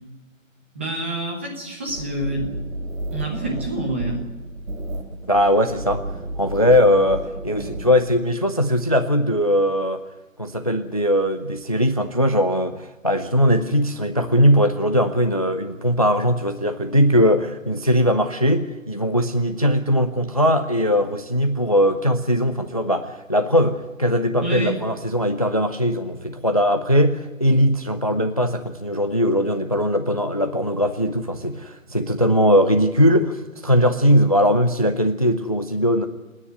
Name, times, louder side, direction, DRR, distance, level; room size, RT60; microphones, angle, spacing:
voice 1, 0.7-2.5 3.1-4.2 24.4-24.8, right 1 dB, 10° right, 1 dB, 1.2 m, -27 dB
sound 1, 1.9-8.2, right 1 dB, 85° right, 3.4 m, -32 dB
voice 2, 5.3-6.0 6.4-10.0 10.4-36.1, equal, 25° left, 9 dB, 0.6 m, -20 dB
29.0 x 9.9 x 9.2 m, 1.2 s
hypercardioid pair, 175°, 41 cm